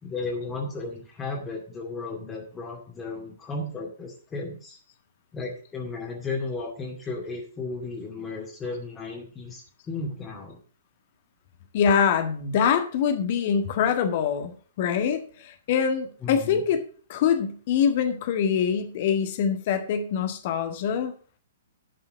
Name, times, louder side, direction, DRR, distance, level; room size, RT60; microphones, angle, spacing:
voice 1, 0.0-4.8 5.3-9.6 9.9-10.6 16.2-16.6, left 3 dB, 15° left, -2 dB, 2.3 m, -34 dB
voice 2, 11.7-16.8 17.1-21.1, left 7 dB, 40° left, 7 dB, 1.6 m, -24 dB
11.5 x 5.7 x 6.6 m, 0.42 s
figure-of-eight pair, 115°, 0 cm